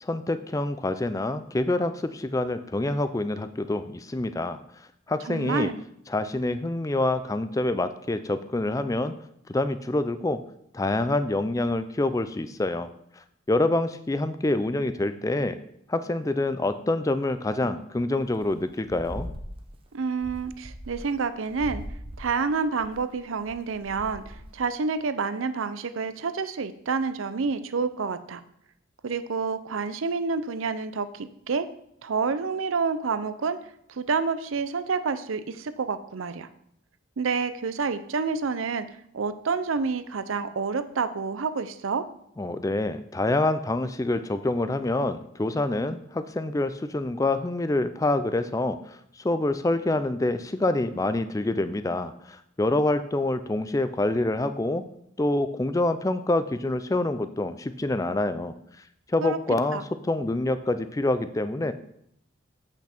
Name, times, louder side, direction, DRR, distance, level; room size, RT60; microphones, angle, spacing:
voice 1, 0.0-4.6 5.1-5.7 6.1-9.1 9.5-10.4 10.7-12.9 13.5-15.6 15.9-19.3 42.4-49.0 49.2-54.8 55.2-58.5 59.1-61.7, left 2 dB, 15° left, 11 dB, 0.4 m, -26 dB
voice 2, 5.3-5.8 19.9-21.8 22.2-28.4 29.0-31.7 32.0-33.6 33.9-36.5 37.2-38.9 39.1-42.0 59.2-59.4 59.7-59.8, right 5 dB, 80° right, 12 dB, 0.5 m, -28 dB
sound 1, 18.3-18.5 18.8-19.7 20.1-21.2 21.5-24.7, equal, 25° right, 0.8 m, -40 dB
8.1 x 5.8 x 4.4 m, 0.73 s
head